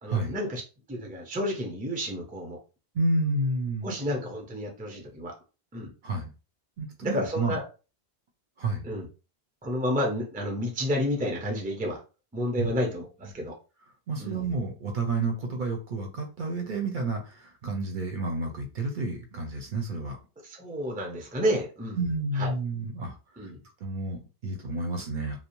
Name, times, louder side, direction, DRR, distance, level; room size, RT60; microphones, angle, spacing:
voice 1, 0.0-0.6 0.9-2.6 3.8-5.3 5.7-5.9 7.0-7.6 8.8-9.1 9.6-12.0 12.3-13.6 14.2-14.4 20.4-22.0 22.3-22.5 23.4-23.6, equal, 10° right, 1 dB, 0.4 m, -30 dB
voice 2, 2.9-3.9 6.0-6.3 6.8-7.6 8.6-8.9 12.6-12.7 14.1-20.2 22.0-23.5 23.8-25.4, right 2 dB, 55° right, 2 dB, 0.7 m, -30 dB
2.6 x 2.0 x 2.9 m, 0.33 s
omnidirectional pair, 1.1 m